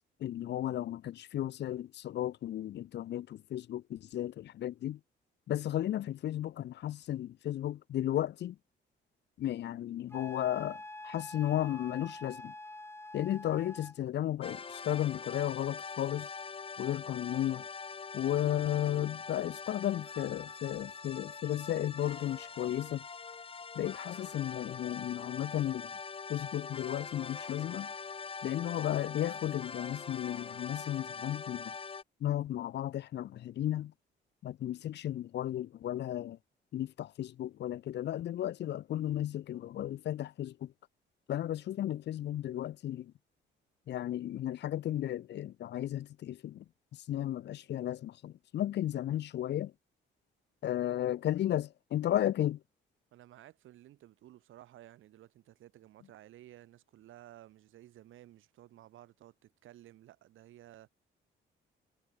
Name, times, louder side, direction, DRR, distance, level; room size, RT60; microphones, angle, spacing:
voice 1, 0.2-5.0 5.5-8.6 9.4-12.5 13.1-16.3 16.8-17.7 18.1-23.1 23.7-26.0 26.3-27.9 28.4-31.7 32.2-33.9 34.4-36.4 36.7-40.7 41.3-43.1 43.9-46.6 46.9-49.7 50.6-52.6, left 12 dB, 60° left, 0.6 m, -34 dB
Wind instrument woodwind instrument, 10.1-14.0, left 2 dB, 10° left, 2.1 m, -46 dB
sound 1, 14.4-32.0, left 5 dB, 30° left, 0.8 m, -43 dB
voice 2, 53.1-60.9, right 13 dB, 80° right, 5.1 m, -55 dB
cardioid pair, 90°, 20 cm